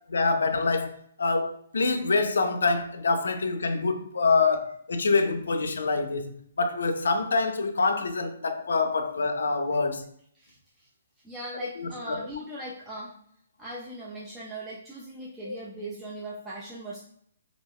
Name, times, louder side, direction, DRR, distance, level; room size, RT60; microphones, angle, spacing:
voice 1, 0.1-10.0 11.8-12.2 15.4-15.6, left 3 dB, 85° left, 0.4 m, -26 dB
voice 2, 10.4-10.9 11.2-13.2 13.6-17.0, right 1 dB, 10° right, 0.3 m, -39 dB
2.3 x 2.2 x 3.4 m
hypercardioid pair, 165°, 0 cm